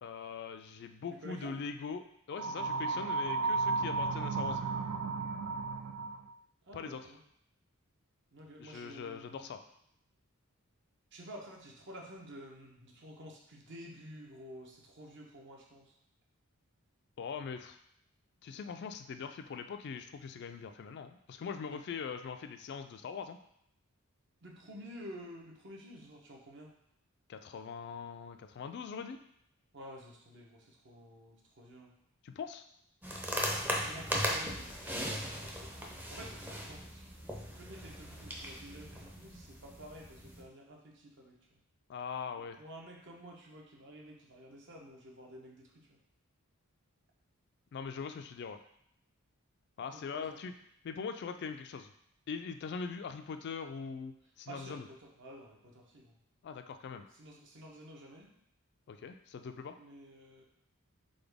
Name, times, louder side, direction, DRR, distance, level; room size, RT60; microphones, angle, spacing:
voice 1, 0.0-4.6 6.7-7.1 8.6-9.6 17.2-17.8 18.4-23.4 27.3-29.2 32.2-32.7 41.9-42.6 47.7-48.6 49.8-50.5 50.8-51.9 52.3-54.9 56.4-57.0 58.9-59.8, left 5 dB, 50° left, 8 dB, 0.3 m, -42 dB
voice 2, 1.2-1.6 6.7-7.2 8.3-9.5 11.1-15.9 21.7-21.8 24.4-26.7 29.7-31.9 33.5-36.3 36.6-41.4 42.6-46.0 49.9-50.4 54.5-56.1 57.2-58.3 59.8-60.4, equal, 55° right, -1 dB, 0.9 m, -51 dB
sound 1, 2.3-6.3, right 4 dB, 70° right, 0.4 m, -34 dB
sound 2, 33.0-40.4, equal, 10° right, 0.5 m, -38 dB
3.9 x 3.8 x 3.5 m, 0.72 s
head